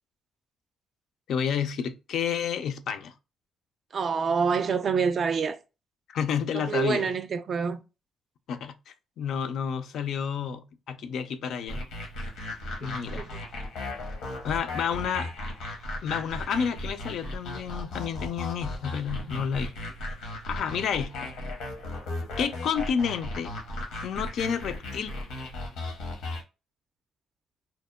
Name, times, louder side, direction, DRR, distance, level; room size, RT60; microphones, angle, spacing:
voice 1, 1.3-3.1 6.1-7.1 8.5-11.8 12.8-13.3 14.4-15.3 16.0-19.7 20.5-21.3 22.4-23.5 24.0-25.1, left 7 dB, 70° left, 0.3 m, -30 dB
voice 2, 3.9-5.6 6.5-7.8 12.8-12.9 13.1-13.3, right 5 dB, 50° right, 0.3 m, -26 dB
sound 1, 11.7-26.4, left 1 dB, 90° left, 0.8 m, -36 dB
2.8 x 2.1 x 2.2 m
cardioid pair, 90°, 0 cm